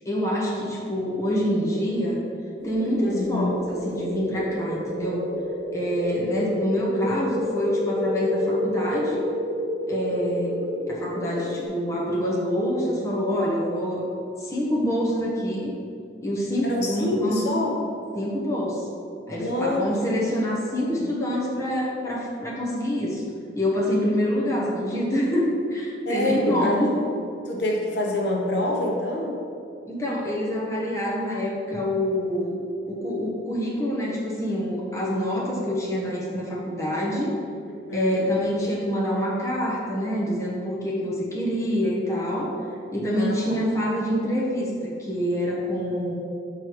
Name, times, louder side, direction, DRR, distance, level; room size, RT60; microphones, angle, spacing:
voice 1, 0.0-2.2 2.6-5.3 5.7-9.2 9.9-14.1 14.4-15.7 16.2-17.4 18.1-18.9 19.3-23.2 23.5-27.1 29.9-32.6 32.9-37.3 37.9-42.5 42.9-46.2, equal, 15° left, -5 dB, 1.0 m, -26 dB
sound 1, 2.6-11.7, equal, 80° right, 1.4 m, -30 dB
voice 2, 3.0-3.6 16.6-17.7 19.4-20.2 26.1-26.9 27.5-29.4 37.7-38.3 43.1-43.6, left 1 dB, 65° left, -1 dB, 1.0 m, -26 dB
6.6 x 4.8 x 4.6 m, 2.5 s
head